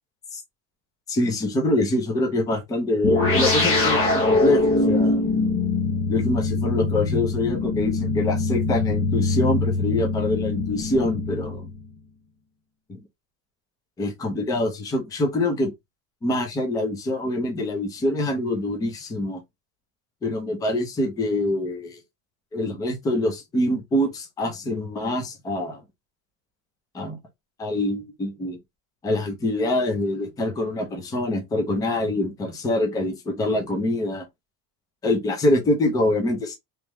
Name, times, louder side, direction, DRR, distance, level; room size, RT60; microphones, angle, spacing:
voice 1, 1.1-5.2 6.1-11.7 12.9-13.0 14.0-15.7 16.2-19.4 20.2-22.0 22.5-25.8 26.9-27.2 27.6-28.6 29.0-34.3 35.0-36.6, left 1 dB, 10° left, 0.4 m, -25 dB
sound 1, 3.0-11.9, left 3 dB, 30° left, 1.0 m, -23 dB
3.3 x 3.1 x 3.2 m
cardioid pair, 180°, 45 cm